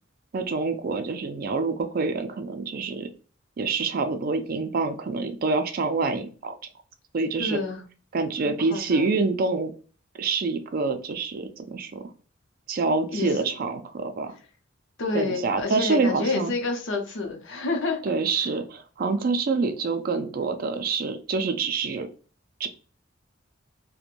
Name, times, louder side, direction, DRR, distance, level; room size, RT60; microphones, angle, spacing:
voice 1, 0.3-3.1 3.6-6.5 7.1-7.6 8.1-9.7 10.2-12.1 12.7-14.3 15.1-16.5 18.0-22.1 22.6-22.7, right 4 dB, 50° right, 8 dB, 0.4 m, -26 dB
voice 2, 7.4-7.8 8.5-9.2 13.1-13.5 15.0-18.2 18.4-18.5, left 3 dB, 70° left, 3 dB, 0.7 m, -29 dB
2.5 x 2.1 x 2.9 m, 0.39 s
head